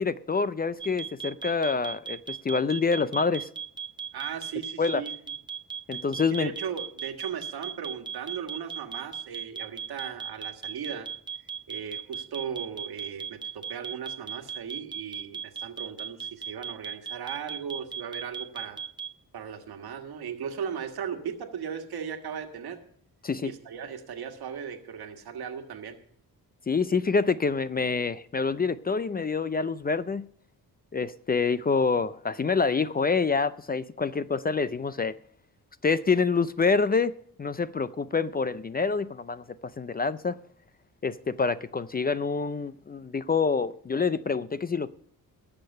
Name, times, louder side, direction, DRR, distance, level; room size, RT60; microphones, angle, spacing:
voice 1, 0.0-3.5 4.8-5.0 5.9-6.5 23.2-23.5 26.7-30.3 30.9-35.2 35.8-40.4 41.0-44.9, left 4 dB, 25° left, 0.4 m, -27 dB
sound 1, 0.8-19.1, right 7 dB, 10° right, 0.8 m, -36 dB
voice 2, 4.1-5.1 6.3-11.1 11.7-18.8 19.3-22.8 23.4-25.9, right 7 dB, 80° right, 1.7 m, -37 dB
18.0 x 6.6 x 5.5 m
cardioid pair, 100°, 37 cm